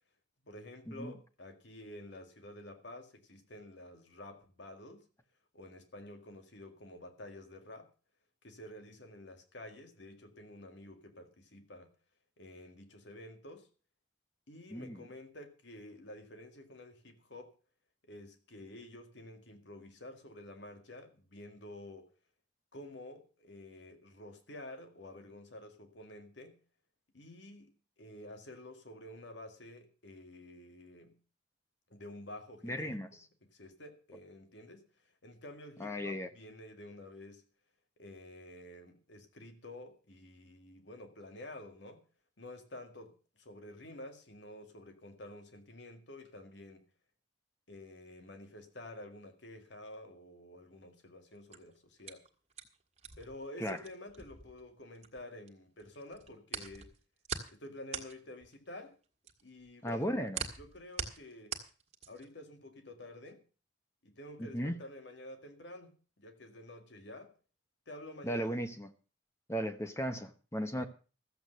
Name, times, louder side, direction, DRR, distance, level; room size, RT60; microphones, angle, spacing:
voice 1, 0.4-5.1 5.5-7.9 8.4-11.9 12.4-13.7 14.5-17.5 18.0-22.1 22.7-26.6 27.1-31.2 31.9-33.0 33.4-37.4 38.0-42.1 42.4-46.8 47.7-52.3 53.2-56.9 57.5-59.0 59.4-60.1 60.6-61.6 62.1-63.4 64.0-67.3 67.9-68.5 70.7-70.9, left 1 dB, 70° left, 2.0 m, -50 dB
voice 2, 14.7-15.0 32.6-33.1 35.8-36.3 53.6-53.8 59.8-60.5 64.4-64.8 68.2-68.9 69.5-70.9, equal, 15° left, 0.9 m, -36 dB
sound 1, 51.3-55.5 55.8-62.4, right 6 dB, 35° right, 1.6 m, -43 dB
14.0 x 8.0 x 6.5 m
head